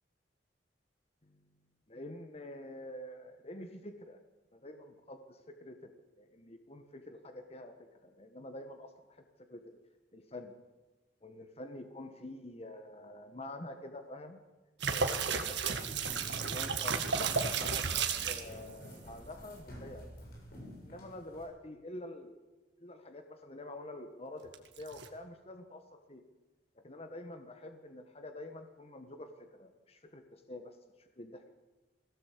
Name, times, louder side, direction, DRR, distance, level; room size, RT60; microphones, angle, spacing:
voice 1, 1.9-4.2 4.5-9.8 10.1-10.5 11.2-14.4 14.9-16.0 16.5-20.1 20.9-22.4 22.8-26.2 26.8-31.5, left 1 dB, 35° left, 7 dB, 1.4 m, -47 dB
sound 1, 14.8-18.5 24.5-25.1, right 5 dB, 75° right, 1.9 m, -33 dB
sound 2, 16.0-21.4, equal, 55° left, 7.9 m, -48 dB
20.5 x 17.0 x 8.4 m, 1.2 s
head